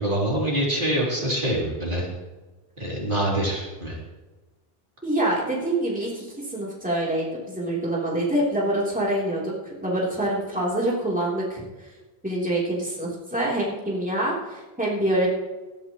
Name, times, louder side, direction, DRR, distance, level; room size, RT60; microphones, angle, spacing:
voice 1, 0.0-2.1 2.8-4.0, right 1 dB, 55° right, -4 dB, 3.5 m, -25 dB
voice 2, 5.0-11.6 12.2-15.3, right 1 dB, 10° right, -6 dB, 3.4 m, -26 dB
19.5 x 12.5 x 3.1 m, 1.2 s
omnidirectional pair, 1.1 m